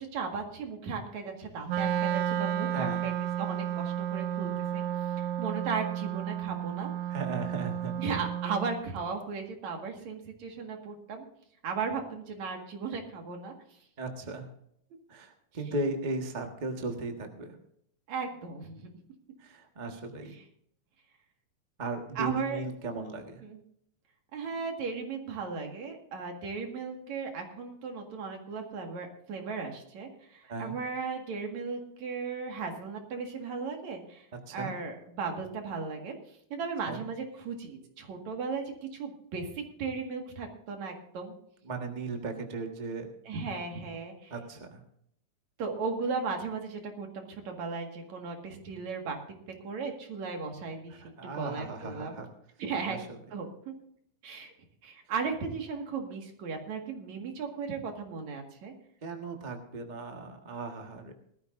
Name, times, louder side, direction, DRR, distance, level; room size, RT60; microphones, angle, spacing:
voice 1, 0.1-3.1 3.4-4.8 5.2-6.9 8.0-11.3 11.6-13.5 18.1-18.9 22.2-22.6 23.4-23.6 24.3-34.3 34.5-36.1 36.5-41.3 43.3-44.3 45.6-49.2 49.6-51.0 51.4-52.2 52.6-53.0 53.3-53.7 54.2-54.5 54.8-58.7, right 5 dB, 65° right, 3 dB, 3.1 m, -36 dB
Wind instrument woodwind instrument, 1.7-8.8, right 10 dB, 85° right, 1.3 m, -32 dB
voice 2, 2.7-3.0 7.1-7.9 14.0-14.5 15.1-17.6 19.4-20.4 21.8-23.4 30.5-30.8 34.5-34.7 36.8-37.0 41.6-43.1 44.3-44.8 50.9-52.3 52.9-53.1 59.0-61.1, right 3 dB, 35° right, 3 dB, 0.6 m, -36 dB
20.0 x 13.5 x 2.6 m, 0.71 s
omnidirectional pair, 3.6 m